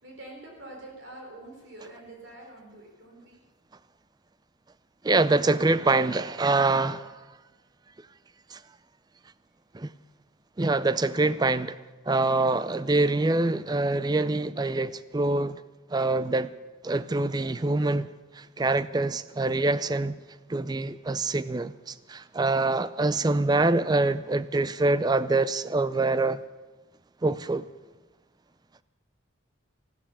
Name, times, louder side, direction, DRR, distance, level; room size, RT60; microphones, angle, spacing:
voice 1, 0.0-3.4, right 1 dB, 55° right, 4.4 m, -45 dB
voice 2, 5.0-7.1 8.5-8.6 9.7-9.9 10.6-11.7 12.1-15.6 15.9-16.5 16.8-18.1 18.4-20.2 20.5-26.4 27.2-27.7, right 2 dB, 20° right, 0.4 m, -25 dB
14.5 x 12.5 x 7.2 m
head